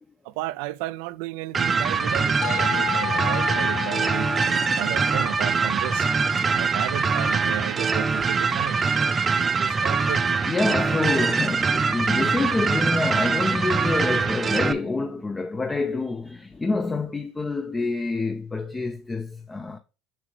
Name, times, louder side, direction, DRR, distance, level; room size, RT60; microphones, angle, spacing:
voice 1, 0.2-4.3 4.7-6.1 6.5-9.2 9.6-10.2, right 17 dB, 75° right, 0.3 m, -33 dB
sound 1, 1.5-14.7, right 5 dB, 30° right, 0.6 m, -23 dB
sound 2, 2.4-7.4, left 13 dB, 55° left, 3.0 m, -34 dB
voice 2, 10.5-19.8, left 3 dB, 20° left, 0.5 m, -27 dB
6.0 x 5.9 x 3.2 m
hypercardioid pair, 85°, 0 cm